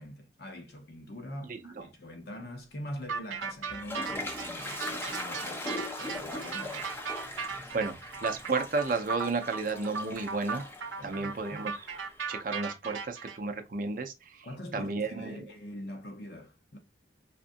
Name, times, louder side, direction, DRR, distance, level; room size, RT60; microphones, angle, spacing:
voice 1, 0.0-6.9 11.0-11.6 14.4-16.8, equal, 55° left, 0.8 m, -43 dB
voice 2, 1.5-1.8 7.7-8.0 8.2-10.6 11.0-11.7 12.3-14.5 14.7-15.5, right 3 dB, 45° right, 0.5 m, -32 dB
sound 1, 3.1-13.4, right 5 dB, 85° right, 0.6 m, -37 dB
Toilet flush, 3.4-12.3, left 1 dB, 10° left, 0.5 m, -41 dB
5.0 x 2.5 x 2.6 m
head